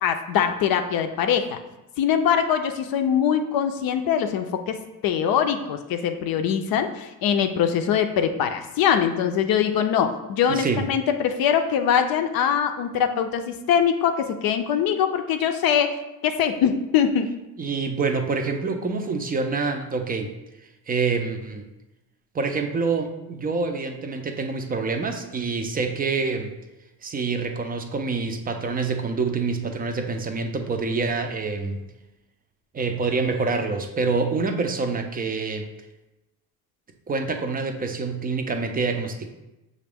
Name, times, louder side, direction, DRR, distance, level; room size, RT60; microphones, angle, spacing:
voice 1, 0.0-1.6 2.0-15.9 16.2-17.3, left 8 dB, 65° left, 7 dB, 0.5 m, -22 dB
voice 2, 10.5-10.8 17.6-20.3 20.9-21.7 22.3-26.5 27.0-31.8 32.7-35.7 37.1-39.3, right 4 dB, 25° right, 6 dB, 0.4 m, -26 dB
5.9 x 2.5 x 3.4 m, 0.97 s
cardioid pair, 100°, 39 cm